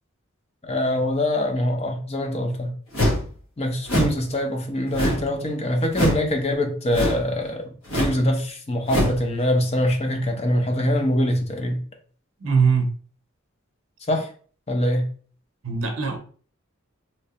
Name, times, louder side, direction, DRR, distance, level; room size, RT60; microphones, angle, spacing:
voice 1, 0.6-2.7 3.6-7.7 7.9-11.8 14.1-14.3 14.7-15.1, left 1 dB, 30° left, 0.7 m, -24 dB
sound 1, 2.9-3.3 3.8-4.2 4.9-5.3 5.9-6.3 6.9-7.3 7.9-8.2 8.9-9.2, equal, 75° left, 1.5 m, -23 dB
voice 2, 12.4-12.9 15.6-16.2, right 5 dB, 75° right, 0.7 m, -21 dB
3.2 x 3.1 x 2.9 m
head